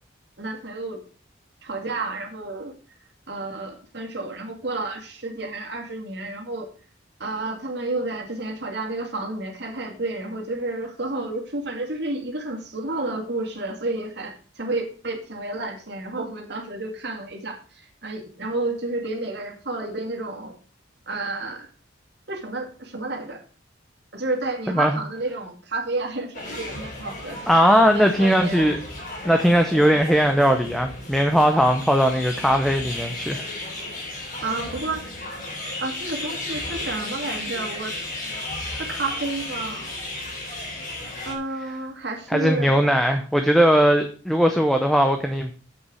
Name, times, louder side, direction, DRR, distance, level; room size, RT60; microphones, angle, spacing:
voice 1, 0.4-1.0 1.6-2.7 3.3-6.7 7.2-20.6 21.1-21.7 22.3-23.4 24.1-27.4 27.8-28.7 29.7-30.0 34.4-35.2 35.8-37.9 38.8-39.9 41.3-42.8, right 2 dB, 60° right, 2 dB, 2.6 m, -31 dB
sound 1, 26.3-41.3, left 2 dB, 45° left, 4.0 m, -34 dB
voice 2, 27.5-28.8 29.2-33.5 42.3-45.5, equal, ahead, 5 dB, 0.8 m, -19 dB
8.3 x 6.3 x 6.3 m, 0.39 s
head